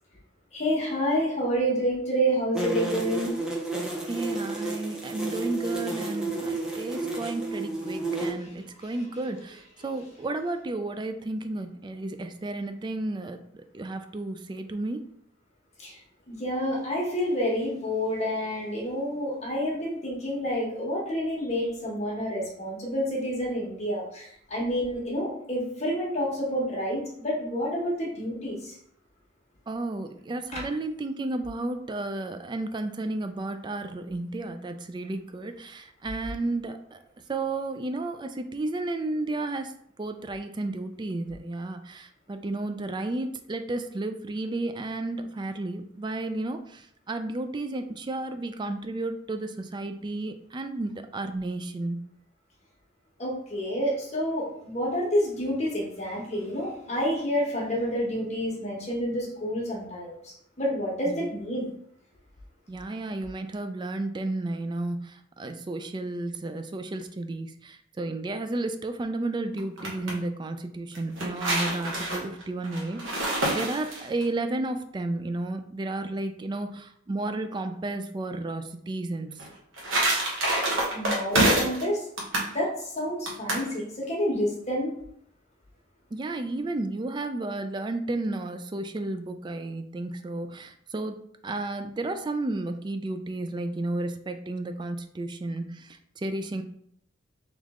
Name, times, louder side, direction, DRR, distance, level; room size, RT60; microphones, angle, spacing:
voice 1, 0.5-3.4 8.4-8.5 15.8-16.0 16.3-28.8 30.5-30.6 53.2-61.7 80.9-82.1 82.4-84.9, equal, 35° left, -3 dB, 1.3 m, -29 dB
sound 1, 2.5-8.3, right 3 dB, 5° right, 0.7 m, -31 dB
voice 2, 4.1-15.1 29.7-37.0 37.3-52.0 61.0-61.2 62.7-79.4 86.1-91.2 91.4-96.6, right 2 dB, 25° right, 7 dB, 0.3 m, -32 dB
sound 2, 69.6-70.1 70.9-74.2 79.4-81.8 82.2-82.5 83.3-83.7, right 1 dB, 80° right, 1.1 m, -27 dB
3.5 x 3.1 x 3.6 m, 0.68 s
head